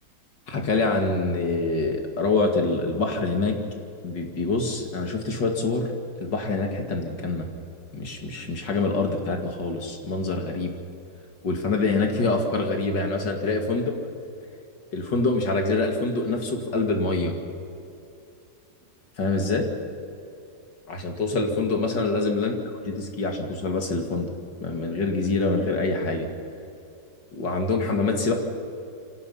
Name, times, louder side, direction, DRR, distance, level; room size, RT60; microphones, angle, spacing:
voice 1, 0.5-3.6 4.0-5.9 6.2-7.5 7.9-10.7 11.4-13.9 14.9-17.4 19.2-19.7 20.9-22.5 22.9-24.3 24.6-26.3 27.3-28.4, left 3 dB, 80° left, 3 dB, 3.0 m, -25 dB
28.5 x 26.0 x 5.7 m, 2.6 s
omnidirectional pair, 1.9 m